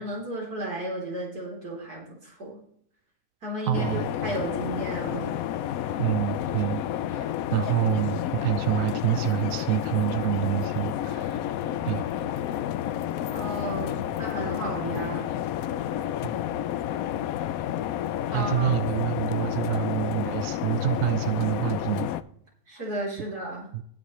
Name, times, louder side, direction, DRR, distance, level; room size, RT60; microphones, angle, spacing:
voice 1, 0.0-2.6 3.4-5.3 13.3-15.3 18.3-18.8 22.7-23.7, right 1 dB, 85° right, -3 dB, 4.1 m, -33 dB
sound 1, 3.7-22.2, left 11 dB, 75° left, 1.0 m, -30 dB
voice 2, 3.7-4.0 6.0-6.8 7.1-11.4 11.8-12.1 16.2-16.4 18.3-22.1 23.7-23.8, right 10 dB, 70° right, 12 dB, 0.9 m, -27 dB
19.0 x 6.7 x 3.1 m, 0.64 s
omnidirectional pair, 1.6 m